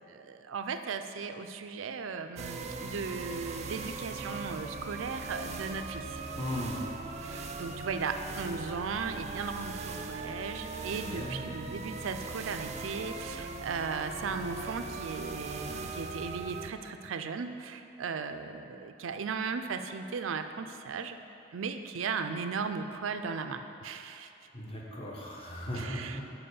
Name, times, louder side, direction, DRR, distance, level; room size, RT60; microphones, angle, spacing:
voice 1, 0.1-6.2 7.2-21.2 21.5-24.3 25.7-26.2, right 5 dB, 90° right, 8 dB, 0.5 m, -37 dB
sound 1, 2.4-16.7, right 3 dB, 35° right, 0.5 m, -40 dB
voice 2, 6.4-6.9 10.9-11.4 24.5-26.2, equal, 30° left, -4 dB, 1.3 m, -37 dB
7.7 x 4.5 x 6.9 m, 2.8 s
head